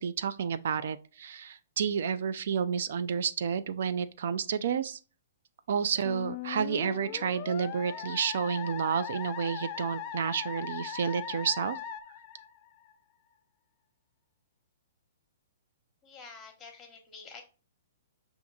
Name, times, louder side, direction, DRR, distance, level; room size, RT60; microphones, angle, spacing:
voice 1, 0.0-5.0 5.7-11.8, right 7 dB, 65° right, 0.3 m, -30 dB
Musical instrument, 6.0-12.9, left 9 dB, 40° left, 0.3 m, -39 dB
voice 2, 16.0-17.4, left 4 dB, 20° left, 1.0 m, -48 dB
5.7 x 2.6 x 2.4 m
hypercardioid pair, 125°, 0 cm